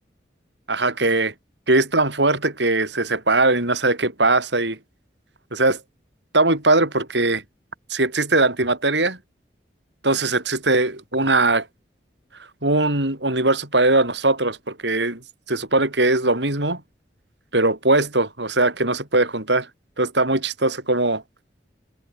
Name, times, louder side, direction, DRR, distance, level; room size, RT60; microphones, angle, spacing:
voice 1, 0.7-1.3 1.7-4.8 5.5-5.8 6.3-7.4 7.9-9.2 10.0-11.7 12.6-15.2 15.5-16.8 17.5-19.7 20.0-21.2, right 2 dB, 80° right, 7.8 m, -20 dB
head